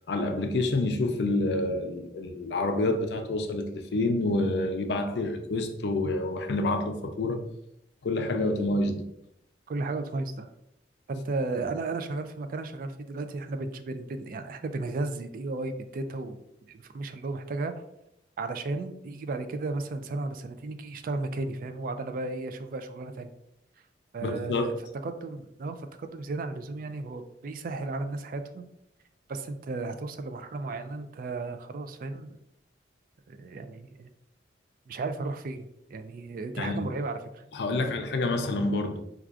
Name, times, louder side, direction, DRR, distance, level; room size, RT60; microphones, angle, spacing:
voice 1, 0.1-7.4 8.0-9.1 24.2-24.8 36.6-36.9 37.5-39.0, left 2 dB, 70° left, 0.5 m, -28 dB
voice 2, 9.7-10.5 11.1-16.4 16.7-17.8 18.4-23.3 24.1-24.7 25.0-28.7 29.3-32.4 33.3-34.1 34.9-35.6 35.9-37.4 37.8-37.9, right 3 dB, 50° right, 0.3 m, -34 dB
4.5 x 2.4 x 2.4 m
head